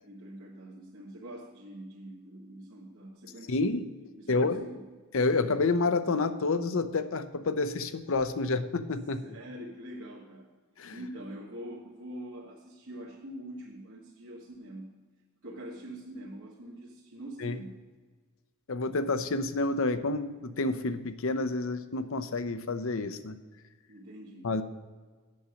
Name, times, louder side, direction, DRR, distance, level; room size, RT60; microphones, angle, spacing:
voice 1, 0.0-3.8 4.2-4.8 9.2-10.5 10.9-14.9 15.4-17.8 23.9-24.5, right 1 dB, 65° right, -6 dB, 1.5 m, -44 dB
voice 2, 3.5-3.9 4.3-4.6 5.1-9.2 10.8-11.0 17.4-17.6 18.7-23.4 24.4-24.6, left 3 dB, 60° left, 11 dB, 0.6 m, -29 dB
8.5 x 6.4 x 7.0 m, 1.4 s
head